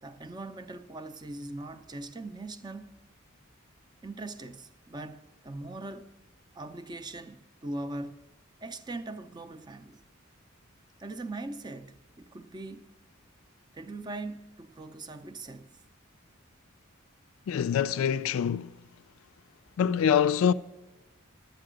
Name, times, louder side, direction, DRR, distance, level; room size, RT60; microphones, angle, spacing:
voice 1, 0.0-3.0 4.0-6.1 6.5-8.3 8.6-10.0 11.0-12.9 13.7-15.8, right 2 dB, 20° right, 0.5 m, -41 dB
voice 2, 17.5-18.8 19.8-20.5, left 8 dB, 75° left, 0.3 m, -25 dB
11.5 x 9.1 x 5.0 m
head